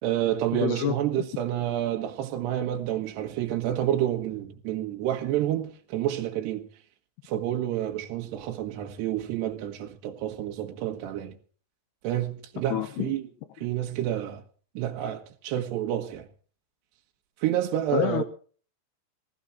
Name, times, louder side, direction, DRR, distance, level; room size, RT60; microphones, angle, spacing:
voice 1, 0.0-6.7 7.2-11.3 12.0-13.2 13.6-14.4 14.7-16.3 17.4-18.2, right 12 dB, 80° right, 3.5 m, -29 dB
voice 2, 0.5-1.0 12.7-13.2 17.9-18.2, left 12 dB, 75° left, 2.9 m, -27 dB
20.5 x 16.0 x 4.3 m
omnidirectional pair, 4.9 m